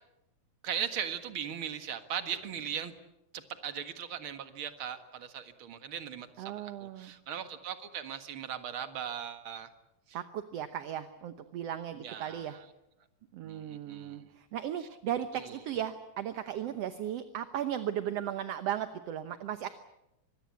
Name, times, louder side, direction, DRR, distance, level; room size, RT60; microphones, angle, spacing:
voice 1, 0.6-2.9 3.3-9.7 10.1-10.2 12.0-12.6 13.4-14.3 15.3-15.5, right 8 dB, 50° right, 9 dB, 2.2 m, -39 dB
voice 2, 6.4-7.1 10.1-12.6 13.3-19.7, right 10 dB, 65° right, 10 dB, 1.9 m, -36 dB
25.0 x 22.0 x 8.4 m, 0.89 s
omnidirectional pair, 3.5 m